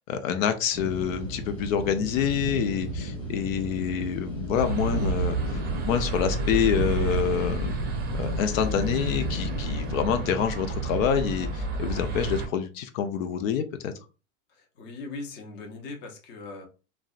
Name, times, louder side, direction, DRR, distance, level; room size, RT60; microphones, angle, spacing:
voice 1, 0.0-7.7 8.2-13.9, left 8 dB, 80° left, 0.5 m, -27 dB
sound 1, 0.7-11.1, right 1 dB, 5° left, 0.9 m, -34 dB
sound 2, 4.5-12.5, right 3 dB, 25° right, 0.5 m, -30 dB
voice 2, 14.5-16.7, left 3 dB, 30° left, 0.6 m, -40 dB
2.6 x 2.1 x 2.3 m
supercardioid pair, 130°, 39 cm